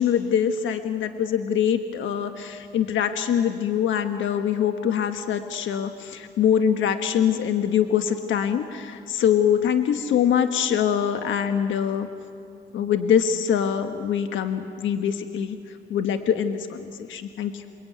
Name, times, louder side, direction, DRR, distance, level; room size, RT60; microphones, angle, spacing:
voice 1, 0.0-12.1 12.7-17.6, left 8 dB, 75° left, 7 dB, 1.4 m, -24 dB
28.0 x 21.5 x 9.4 m, 2.4 s
cardioid pair, 90°, 20 cm